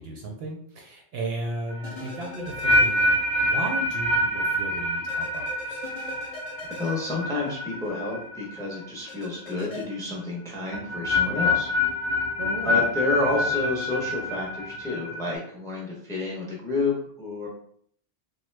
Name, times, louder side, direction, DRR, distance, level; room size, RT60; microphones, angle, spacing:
voice 1, 0.0-3.1 3.4-5.8 12.4-12.8, right 1 dB, 65° right, 1 dB, 0.7 m, -35 dB
sound 1, 1.7-8.8 9.1-9.5 10.7-15.3, left 1 dB, 85° left, 1.0 m, -26 dB
sound 2, 1.8-3.5 3.8-3.9 5.1-7.9 9.1-9.8, left 3 dB, 50° left, 0.5 m, -42 dB
voice 2, 6.6-11.7 12.6-17.5, left 2 dB, 5° left, -2 dB, 0.5 m, -30 dB
3.1 x 2.1 x 3.2 m, 0.62 s
omnidirectional pair, 1.3 m